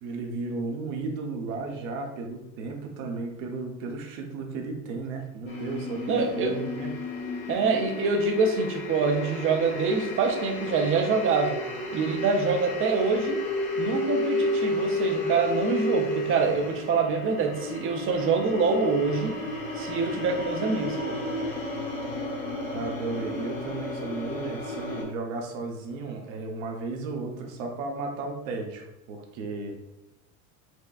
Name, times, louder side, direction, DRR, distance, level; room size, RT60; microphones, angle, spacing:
voice 1, 0.0-6.9 22.7-29.8, right 3 dB, 65° right, 2 dB, 0.8 m, -34 dB
sound 1, 5.5-25.0, left 1 dB, 50° left, 1.2 m, -32 dB
voice 2, 6.1-6.6 7.5-11.6 11.9-13.4 13.8-19.3 19.8-21.2, right 4 dB, 30° right, 4 dB, 0.5 m, -25 dB
4.2 x 2.2 x 2.4 m, 0.95 s
hypercardioid pair, 85°, 43 cm